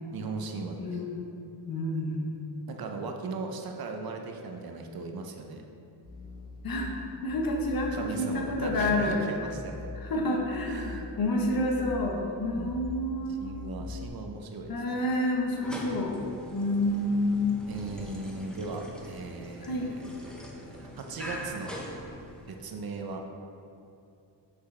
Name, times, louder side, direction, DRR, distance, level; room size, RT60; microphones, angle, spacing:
voice 1, 0.1-1.0 2.7-5.6 7.9-9.9 10.6-11.1 12.5-12.8 13.4-15.0 17.7-19.9 20.3-21.7 22.5-23.2, right 3 dB, 55° right, 3 dB, 0.6 m, -38 dB
voice 2, 0.8-1.2 1.7-2.4 6.6-6.9 7.2-9.2 10.0-10.7 11.2-13.6 14.7-16.1 16.5-17.6 19.6-19.9, left 1 dB, 55° left, 0 dB, 1.0 m, -29 dB
sound 1, 6.0-14.1, left 3 dB, 20° left, 0.9 m, -43 dB
sound 2, 15.5-22.7, equal, ahead, 0.6 m, -42 dB
6.1 x 5.9 x 3.2 m, 2.6 s
wide cardioid pair, 145°, 43 cm